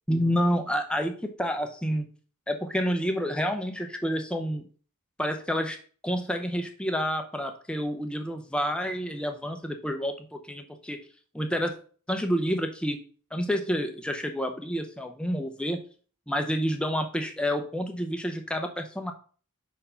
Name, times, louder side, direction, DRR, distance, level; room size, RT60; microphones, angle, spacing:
voice 1, 0.1-2.1 2.5-4.7 5.2-5.8 6.0-11.0 11.3-11.7 12.1-13.0 13.3-15.8 16.3-19.1, equal, 5° left, 5 dB, 0.7 m, -29 dB
5.1 x 4.6 x 5.5 m, 0.42 s
head